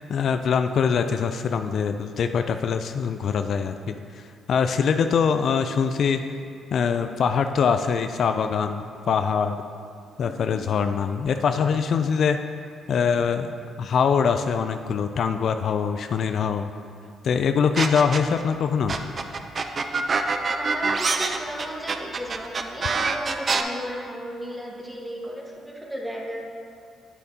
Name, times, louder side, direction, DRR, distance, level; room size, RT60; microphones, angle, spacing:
voice 1, 0.0-6.2 6.7-9.6 10.2-12.4 12.9-13.5 13.8-16.7 17.2-18.9, left 6 dB, 60° left, 8 dB, 0.3 m, -23 dB
sound 1, 17.8-18.4 18.9-23.6, right 4 dB, 40° right, 0.5 m, -25 dB
voice 2, 20.6-26.4, equal, 10° right, -2 dB, 1.4 m, -35 dB
9.1 x 8.2 x 2.8 m, 2.4 s
cardioid pair, 90°, 0 cm